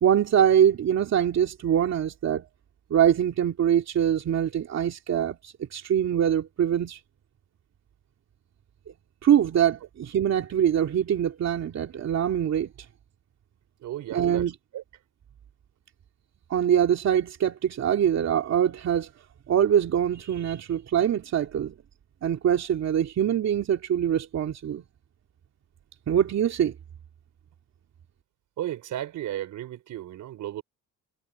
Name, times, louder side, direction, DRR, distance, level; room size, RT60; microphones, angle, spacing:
voice 1, 0.0-2.4 2.9-7.0 9.2-12.7 14.1-14.5 16.5-19.1 19.5-21.7 22.2-24.8 26.1-26.7, right 9 dB, 60° right, 2.8 m, -23 dB
voice 2, 13.8-14.5 14.7-14.8 28.6-30.6, right 12 dB, 80° right, 4.6 m, -34 dB
cardioid pair, 90°, 30 cm